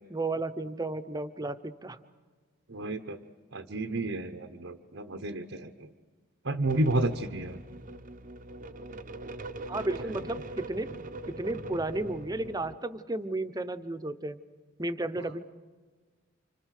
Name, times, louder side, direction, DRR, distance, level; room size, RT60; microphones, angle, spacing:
voice 1, 0.1-2.0 9.7-10.9 11.4-14.4 14.8-15.4, right 2 dB, 20° right, 11 dB, 0.9 m, -33 dB
voice 2, 2.7-3.2 3.5-5.7 6.4-7.6, right 2 dB, 70° right, 6 dB, 1.0 m, -31 dB
sound 1, 6.7-12.8, right 2 dB, 45° right, 0.8 m, -42 dB
29.5 x 26.0 x 6.6 m, 1.4 s
head